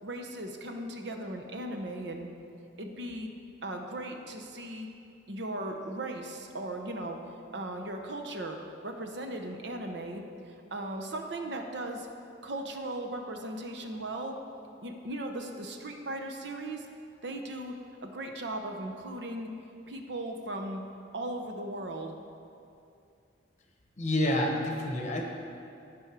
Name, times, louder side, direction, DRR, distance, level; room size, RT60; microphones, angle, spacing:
voice 1, 0.0-2.3 2.8-3.3 3.6-4.9 5.3-7.2 7.5-12.1 12.4-14.4 14.8-16.9 17.2-17.7 18.0-19.5 19.9-20.8 21.1-22.1, right 1 dB, 65° right, 3 dB, 0.8 m, -37 dB
voice 2, 24.0-25.2, left 1 dB, 40° left, 1 dB, 1.1 m, -28 dB
12.0 x 5.4 x 4.7 m, 2.5 s
head